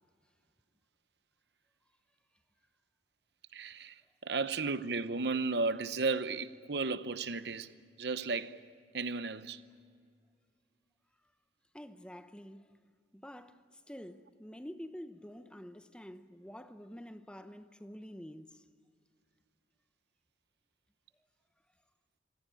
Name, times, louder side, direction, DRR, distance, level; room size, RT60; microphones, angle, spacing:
voice 1, 3.5-7.7 8.0-8.6 8.9-9.6, right 4 dB, 65° right, 0.8 m, -34 dB
voice 2, 11.7-12.8 13.1-18.7, equal, 5° left, 0.7 m, -48 dB
25.5 x 17.5 x 9.1 m
head